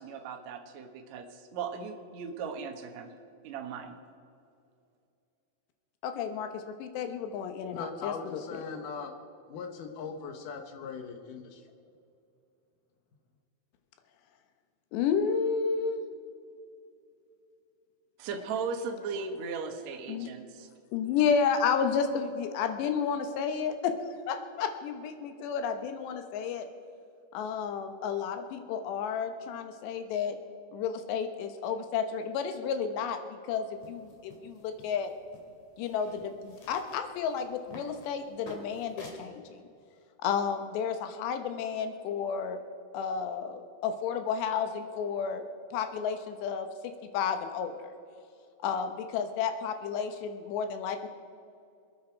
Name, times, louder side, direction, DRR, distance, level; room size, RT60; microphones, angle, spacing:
voice 1, 0.0-3.1 3.4-4.0 18.2-20.7, right 5 dB, 65° right, 4 dB, 1.8 m, -37 dB
voice 2, 6.0-8.6 14.9-16.0 20.1-20.3 20.9-23.9 24.3-26.7 27.3-30.4 30.7-35.1 35.8-39.6 40.2-42.6 42.9-45.4 45.7-46.7 47.1-47.9 48.6-51.1, left 6 dB, 85° left, 7 dB, 3.2 m, -31 dB
voice 3, 7.7-9.1 9.5-11.6, left 5 dB, 65° left, 5 dB, 2.3 m, -39 dB
sound 1, 33.7-39.3, left 3 dB, 50° left, 3.1 m, -51 dB
26.5 x 9.4 x 4.5 m, 2.5 s
omnidirectional pair, 4.9 m